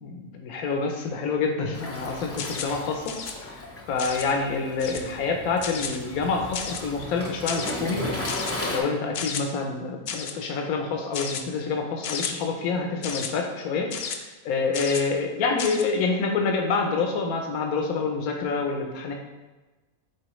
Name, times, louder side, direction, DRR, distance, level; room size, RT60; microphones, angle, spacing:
voice 1, 0.0-3.1 3.4-3.6 3.9-8.0 8.7-13.9 14.2-19.1, left 4 dB, 85° left, 2 dB, 1.2 m, -27 dB
Waves surf, 1.7-8.8, left 1 dB, 15° left, 0.6 m, -35 dB
sound 1, 2.4-2.8 3.1-3.3 4.0-4.3 4.8-5.1 5.6-6.0 6.5-6.9 7.5-7.7 8.3-8.5 9.1-9.4 10.1-10.4 11.1-11.4 12.0-12.3 13.0-13.3 13.9-14.2 14.7-15.1 15.6-15.8, left 6 dB, 60° left, 0.6 m, -32 dB
7.8 x 4.2 x 3.1 m, 1.2 s
omnidirectional pair, 1.5 m